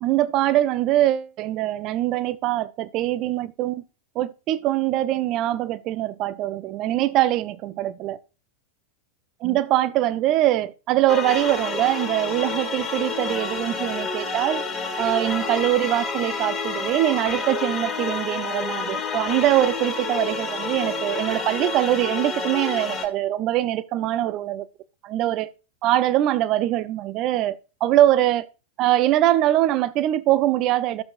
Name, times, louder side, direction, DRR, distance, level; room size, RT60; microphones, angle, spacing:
voice 1, 0.0-3.8 4.2-8.2 9.4-14.6 15.0-24.7 25.0-25.5 25.8-28.5 28.8-31.0, right 14 dB, 40° right, 0.6 m, -23 dB
sound 1, 11.1-23.1, left 4 dB, 20° left, 1.8 m, -29 dB
12.0 x 7.2 x 2.5 m
figure-of-eight pair, 90°, 0 cm